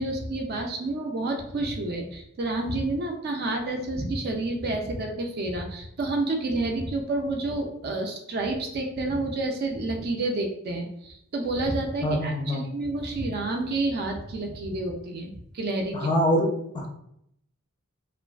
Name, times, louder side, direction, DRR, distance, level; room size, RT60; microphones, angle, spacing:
voice 1, 0.0-16.1, right 2 dB, 45° right, 3 dB, 0.4 m, -29 dB
voice 2, 12.0-12.7 15.9-16.5 16.7-16.9, equal, 20° left, -1 dB, 0.4 m, -24 dB
2.4 x 2.3 x 2.3 m, 0.74 s
head